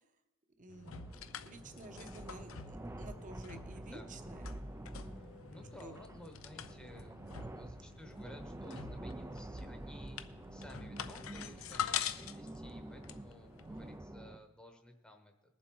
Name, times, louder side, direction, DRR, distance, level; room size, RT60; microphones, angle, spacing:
voice 1, 0.6-1.0 1.4-4.5 5.8-6.0, right 2 dB, 40° right, 7 dB, 1.1 m, -52 dB
sound 1, 0.7-14.0, left 9 dB, 85° left, 0.6 m, -45 dB
sound 2, 0.8-14.4, right 1 dB, 15° right, 0.4 m, -48 dB
voice 2, 3.7-4.1 5.2-10.2 10.5-15.3, left 1 dB, 5° left, 4 dB, 1.0 m, -55 dB
20.5 x 7.5 x 4.6 m, 0.98 s
head